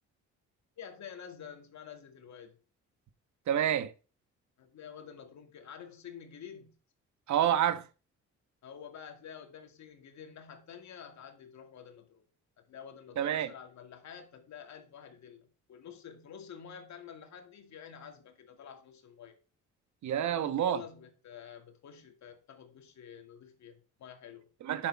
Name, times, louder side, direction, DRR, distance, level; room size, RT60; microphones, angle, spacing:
voice 1, 0.8-2.6 4.6-6.8 8.6-12.3 12.6-19.4 20.2-24.5, left 8 dB, 65° left, 2.3 m, -49 dB
voice 2, 3.5-3.9 7.3-7.9 13.2-13.5 20.0-20.8 24.6-24.9, right 10 dB, 70° right, 1.2 m, -28 dB
10.0 x 6.7 x 4.6 m
cardioid pair, 90°, 30 cm